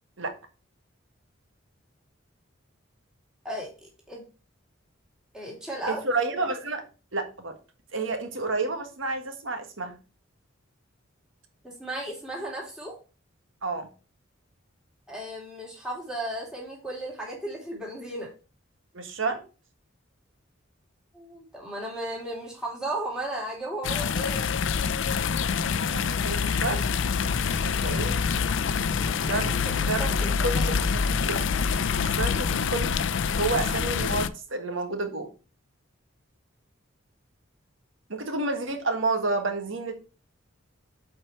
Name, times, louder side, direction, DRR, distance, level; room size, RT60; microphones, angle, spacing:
voice 1, 3.4-4.2 5.3-6.0 11.6-12.9 15.1-18.3 21.1-24.6 29.0-30.5, right 1 dB, 5° right, -4 dB, 2.6 m, -35 dB
voice 2, 5.9-6.8 7.1-7.5 7.9-10.0 13.6-13.9 18.9-19.4 25.8-26.8 27.6-28.2 29.1-29.5 29.9-30.0 30.4-30.6 31.1-31.5 31.9-35.3 38.1-40.0, right 3 dB, 75° right, 6 dB, 1.6 m, -30 dB
sound 1, 23.8-34.3, left 6 dB, 65° left, 0.4 m, -26 dB
7.5 x 4.6 x 4.4 m, 0.34 s
head